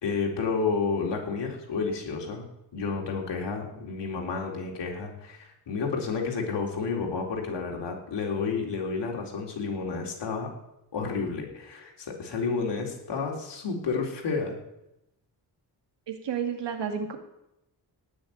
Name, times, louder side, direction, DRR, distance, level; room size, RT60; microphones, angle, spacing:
voice 1, 0.0-10.5 10.9-14.6, left 4 dB, 80° left, 0 dB, 4.0 m, -31 dB
voice 2, 16.1-17.2, right 7 dB, 85° right, 5 dB, 2.4 m, -31 dB
18.0 x 6.5 x 9.5 m, 0.87 s
cardioid pair, 85°, 42 cm